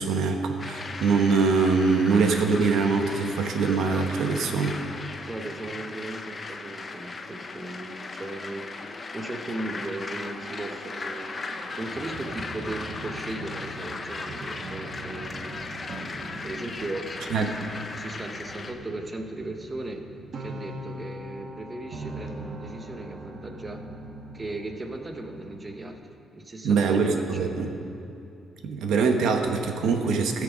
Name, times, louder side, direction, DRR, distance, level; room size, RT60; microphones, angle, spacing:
voice 1, 0.0-4.8 17.3-17.5 26.6-27.7 28.6-30.4, right 4 dB, 80° right, 4 dB, 1.0 m, -23 dB
sound 1, 0.6-18.7, left 3 dB, 25° left, 0.6 m, -37 dB
voice 2, 5.3-8.7 9.1-11.4 11.8-15.5 16.0-16.1 16.4-17.2 17.6-20.1 20.4-23.8 24.3-26.0 26.3-27.8, right 2 dB, 20° right, 5 dB, 0.8 m, -37 dB
sound 2, 9.5-25.9, right 1 dB, 45° right, 1.0 m, -42 dB
16.5 x 6.6 x 5.0 m, 2.8 s
cardioid pair, 160°, 0 cm